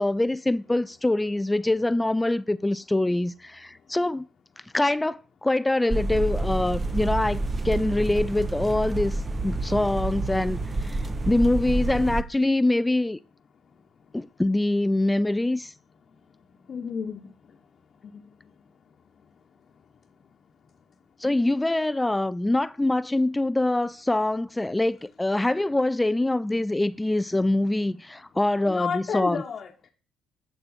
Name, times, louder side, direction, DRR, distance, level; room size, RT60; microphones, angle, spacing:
voice 1, 0.0-4.3 4.7-13.2 14.1-15.7 21.2-29.4, left 2 dB, 15° left, 0.4 m, -24 dB
sound 1, 5.9-12.2, right 2 dB, 30° right, 1.1 m, -28 dB
voice 2, 16.7-17.3 18.1-18.2 28.7-29.9, left 6 dB, 45° left, 1.1 m, -31 dB
11.5 x 4.1 x 7.2 m
figure-of-eight pair, 45°, 0 cm